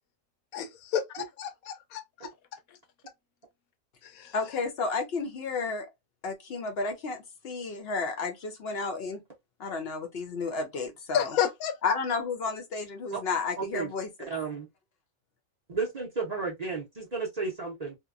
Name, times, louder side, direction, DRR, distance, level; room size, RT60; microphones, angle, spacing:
voice 1, 0.5-2.3 4.0-4.3 11.1-11.7, left 8 dB, 85° left, 1.1 m, -31 dB
voice 2, 4.3-5.9 6.2-9.2 9.6-11.4 11.8-14.3, left 4 dB, 55° left, 0.7 m, -32 dB
voice 3, 13.6-13.9 14.3-14.7 15.7-18.0, right 4 dB, 40° right, 0.6 m, -33 dB
2.8 x 2.1 x 2.3 m
omnidirectional pair, 1.4 m